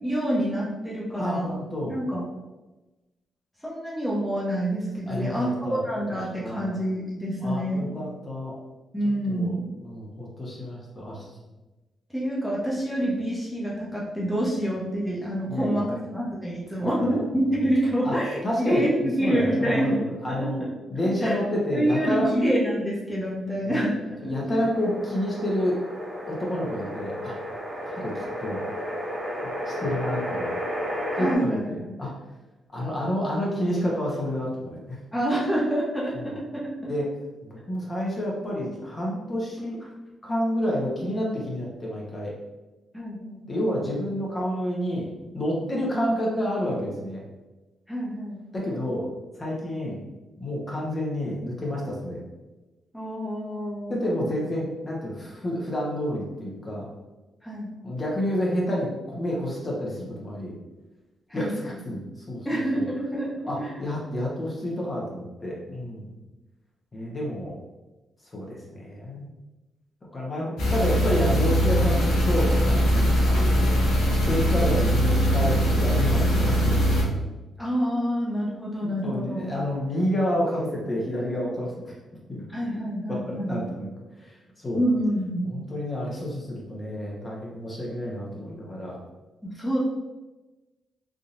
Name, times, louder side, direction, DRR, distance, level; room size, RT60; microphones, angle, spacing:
voice 1, 0.0-1.5 1.9-2.2 3.6-7.9 8.9-9.7 12.1-20.0 20.3-20.7 21.2-21.4 21.7-24.0 24.4-24.5 31.2-31.7 35.1-36.9 42.9-43.4 47.9-48.4 52.9-54.3 57.4-57.7 61.3-61.8 62.4-63.7 77.6-79.5 82.5-83.7 84.7-85.5 89.4-89.8, right 1 dB, 5° left, -6 dB, 0.9 m, -27 dB
voice 2, 1.2-2.0 5.0-6.7 7.4-8.5 9.3-9.5 9.8-11.3 15.5-15.9 16.8-17.1 18.0-18.1 18.4-20.6 20.9-22.3 23.6-23.9 24.2-25.8 26.3-27.4 27.8-28.6 29.7-30.5 31.1-32.1 32.7-35.0 36.1-36.4 36.9-37.1 37.4-39.8 40.2-42.3 43.5-45.1 45.3-47.2 48.5-49.1 49.4-50.0 50.4-52.2 53.9-56.9 57.8-60.6 61.3-62.9 63.5-66.1 66.9-67.5 68.3-69.3 70.1-73.7 74.3-77.1 78.8-81.9 82.3-82.4 83.1-83.9 84.2-84.8 85.4-89.0, equal, 30° left, -4 dB, 1.0 m, -29 dB
sound 1, 24.7-31.4, equal, 40° right, 0.7 m, -32 dB
sound 2, 70.6-77.0, equal, 85° left, 0.9 m, -21 dB
3.6 x 2.7 x 2.5 m, 1.1 s
cardioid pair, 65°, 0 cm